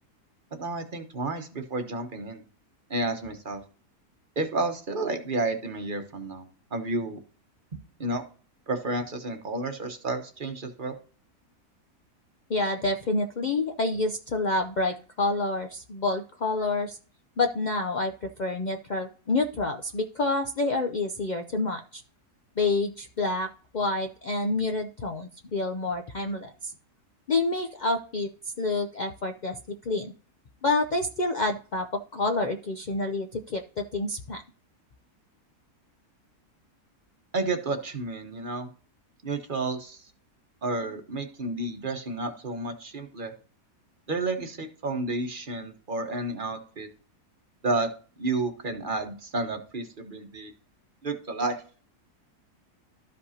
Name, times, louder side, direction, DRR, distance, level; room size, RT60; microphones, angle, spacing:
voice 1, 0.6-2.4 2.9-3.6 4.4-7.2 8.0-8.2 8.7-10.9 37.3-38.7 39.2-40.0 40.6-43.3 44.1-46.9 47.6-47.9 48.2-50.5 51.0-51.6, right 2 dB, 35° right, 5 dB, 1.0 m, -31 dB
voice 2, 12.5-17.0 17.4-22.0 22.6-26.7 27.3-30.1 30.6-34.4, left 2 dB, 70° left, 4 dB, 0.4 m, -28 dB
13.0 x 5.3 x 2.8 m, 0.39 s
omnidirectional pair, 1.7 m